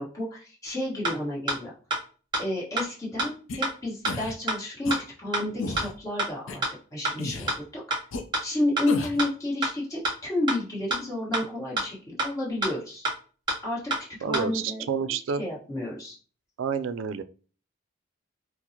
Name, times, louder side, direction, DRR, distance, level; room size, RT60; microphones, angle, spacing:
voice 1, 0.0-1.7 2.4-4.9 5.2-6.6 6.9-7.8 8.4-13.0 13.6-13.8 14.2-14.8 15.4-16.2, left 1 dB, 15° left, -6 dB, 1.3 m, -31 dB
sound 1, 0.7-0.8 1.0-1.1 1.5-1.6 1.9-2.0 2.3-2.4 2.8-2.9 3.2-3.3 3.6-3.7 4.0-4.1 4.5-4.6 4.9-5.0 5.3-5.4 5.8-5.9 6.2-6.3 6.6-6.7 7.0-7.1 7.5-7.6 7.9-8.0 8.3-8.4 8.8-8.9 9.2-9.3 9.6-9.7 10.0-10.1 10.5-10.6 10.9-11.0 11.3-11.4 11.8-11.9 12.2-12.3 12.6-12.7 13.0-13.1 13.5-13.6 13.9-14.0 14.3-14.4, right 2 dB, 25° right, 1.0 m, -26 dB
sound 2, 3.5-3.6 4.1-4.3 4.8-5.0 5.6-5.9 6.5-6.6 7.2-7.6 8.1-8.2 8.9-9.2, left 3 dB, 70° left, 0.5 m, -33 dB
voice 2, 14.2-15.4 16.6-17.2, right 6 dB, 70° right, 13 dB, 0.3 m, -29 dB
4.4 x 2.0 x 2.8 m, 0.38 s
head